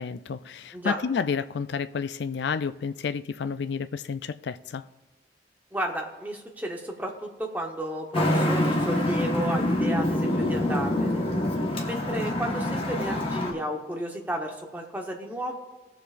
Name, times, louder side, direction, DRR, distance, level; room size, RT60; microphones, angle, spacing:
voice 1, 0.0-4.8, left 6 dB, 70° left, 0.4 m, -30 dB
voice 2, 5.7-11.2 11.8-15.6, right 1 dB, 10° right, 1.1 m, -32 dB
Traffic noise roadway noise, 8.1-13.5, left 1 dB, 30° left, 1.3 m, -26 dB
18.5 x 7.0 x 2.5 m
head